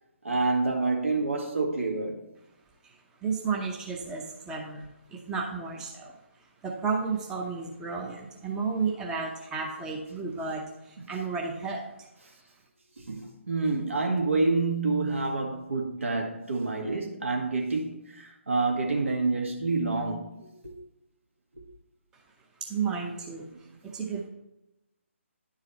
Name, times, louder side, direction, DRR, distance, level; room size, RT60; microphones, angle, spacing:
voice 1, 0.2-2.2 11.1-11.2 13.0-20.8 21.5-21.6, right 3 dB, 70° right, 1.9 m, -28 dB
voice 2, 2.8-6.2 6.6-12.1 22.1-22.2 22.6-24.3, right 5 dB, 10° right, 0.7 m, -33 dB
10.5 x 4.9 x 4.3 m
figure-of-eight pair, 145°, 7 cm